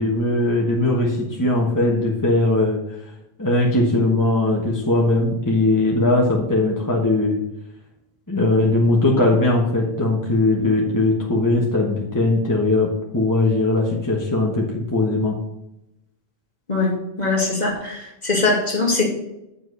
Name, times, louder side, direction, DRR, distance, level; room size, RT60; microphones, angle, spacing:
voice 1, 0.0-3.0 3.4-7.4 8.3-15.4, left 2 dB, 20° left, -2 dB, 1.3 m, -20 dB
voice 2, 17.2-19.0, left 3 dB, 45° left, -1 dB, 2.0 m, -21 dB
9.0 x 4.8 x 5.5 m, 0.87 s
omnidirectional pair, 1.1 m